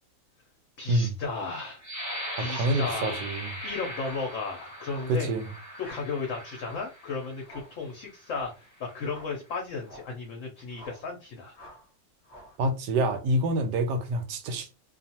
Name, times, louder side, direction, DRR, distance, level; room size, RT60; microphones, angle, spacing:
voice 1, 0.8-1.9 2.4-3.2 3.6-5.3 5.8-11.5, left 4 dB, 65° left, 0.8 m, -34 dB
sound 1, 1.8-7.5 8.1-8.3 8.8-9.2, equal, 15° right, 0.7 m, -39 dB
voice 2, 2.5-3.5 5.1-5.5 12.6-14.8, right 1 dB, 85° right, 1.2 m, -27 dB
sound 2, 4.0-4.3 4.9-5.2 5.8-6.1 6.6-6.9 7.4-7.8 8.3-8.6 9.0-9.4 9.8-10.2 10.7-11.1 11.5-11.9 12.2-12.6, equal, 20° left, 0.6 m, -49 dB
2.5 x 2.3 x 2.7 m
omnidirectional pair, 1.8 m